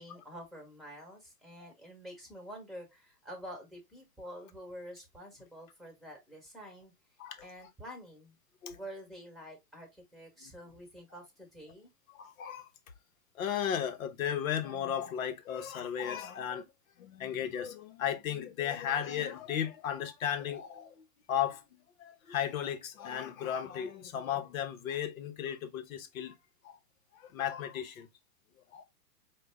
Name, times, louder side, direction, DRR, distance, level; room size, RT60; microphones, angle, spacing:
voice 1, 0.0-6.9 7.4-8.4 8.7-11.9, equal, ahead, 1.3 m, -48 dB
voice 2, 12.1-12.7 13.3-16.7 17.0-21.0 21.3-21.6 22.0-26.4 26.6-26.8 27.1-28.1 28.7-28.8, left 9 dB, 55° left, 0.9 m, -35 dB
4.8 x 2.2 x 3.4 m
hypercardioid pair, 120°, 48 cm